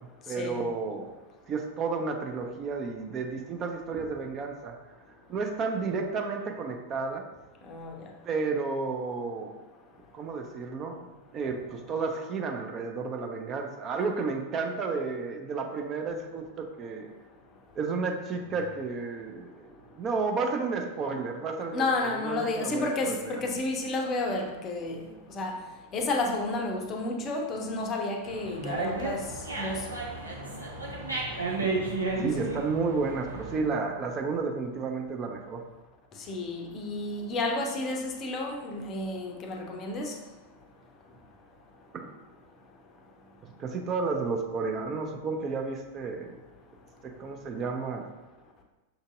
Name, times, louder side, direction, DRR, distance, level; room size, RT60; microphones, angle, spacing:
voice 1, 0.3-1.1 1.5-4.8 5.3-7.3 8.2-9.6 10.1-17.1 17.8-23.4 31.6-35.6 41.9-42.1 43.6-46.4 47.0-48.1, right 4 dB, 30° right, 0.4 m, -32 dB
voice 2, 7.6-8.1 21.7-25.6 25.9-29.9 36.2-40.2, left 2 dB, 30° left, 0.5 m, -31 dB
Dog, 28.2-33.6, right 3 dB, 85° right, 0.7 m, -33 dB
5.8 x 2.6 x 2.5 m
figure-of-eight pair, 90°, 0 cm